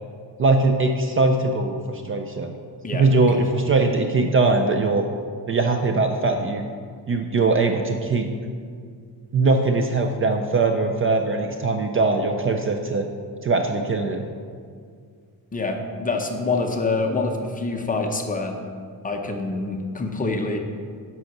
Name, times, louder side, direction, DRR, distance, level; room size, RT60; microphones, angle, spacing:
voice 1, 0.4-2.5 2.9-5.0 5.5-6.7 7.1-8.3 9.3-13.1 13.4-14.2, right 3 dB, 35° right, 5 dB, 0.4 m, -21 dB
voice 2, 2.8-3.5 15.5-18.6 19.0-20.6, left 3 dB, 20° left, 3 dB, 0.6 m, -26 dB
7.8 x 5.6 x 5.9 m, 2.1 s
cardioid pair, 170°, 40 cm